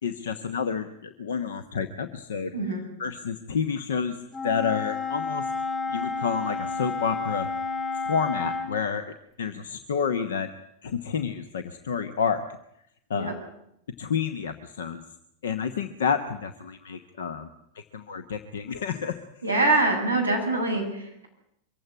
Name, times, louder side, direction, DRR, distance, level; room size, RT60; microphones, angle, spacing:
voice 1, 0.0-4.2 4.4-5.4 5.9-7.5 8.0-10.5 10.8-12.4 13.1-13.4 14.0-15.0 15.4-19.2, left 6 dB, 65° left, 11 dB, 1.1 m, -29 dB
voice 2, 2.5-2.8 13.1-13.3 19.4-21.3, right 2 dB, 90° left, 1 dB, 6.9 m, -24 dB
Wind instrument woodwind instrument, 4.3-8.8, left 4 dB, 25° left, 5.8 m, -30 dB
24.0 x 15.5 x 9.9 m, 0.77 s
figure-of-eight pair, 90°, 0 cm